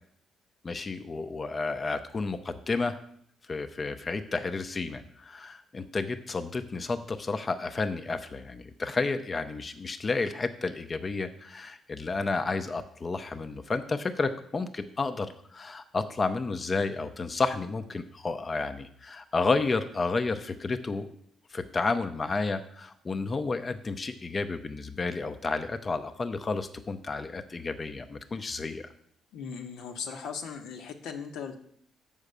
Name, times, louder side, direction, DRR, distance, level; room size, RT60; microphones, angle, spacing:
voice 1, 0.6-3.0 3.5-21.1 21.5-28.9, left 3 dB, 35° left, 8 dB, 0.6 m, -31 dB
voice 2, 29.3-31.6, left 6 dB, 85° left, 5 dB, 1.0 m, -38 dB
7.3 x 4.9 x 6.7 m, 0.66 s
cardioid pair, 90°, 0 cm